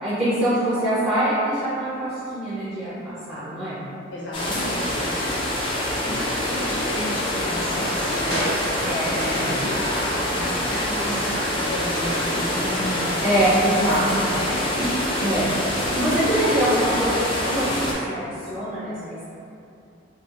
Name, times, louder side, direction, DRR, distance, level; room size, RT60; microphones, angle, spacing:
voice 1, 0.0-3.8 8.8-9.6 12.5-14.2 14.8-14.9 15.2-15.5 15.9-19.2, right 1 dB, 30° right, -14 dB, 0.6 m, -24 dB
voice 2, 4.1-5.2 6.0-12.6 14.2-14.7, equal, 70° left, -7 dB, 0.7 m, -33 dB
sound 1, 4.3-17.9, left 1 dB, 25° left, 0.3 m, -25 dB
sound 2, 7.6-10.1 10.3-11.4 11.7-11.8, equal, 80° right, 1.0 m, -33 dB
2.3 x 2.0 x 2.7 m, 2.6 s
head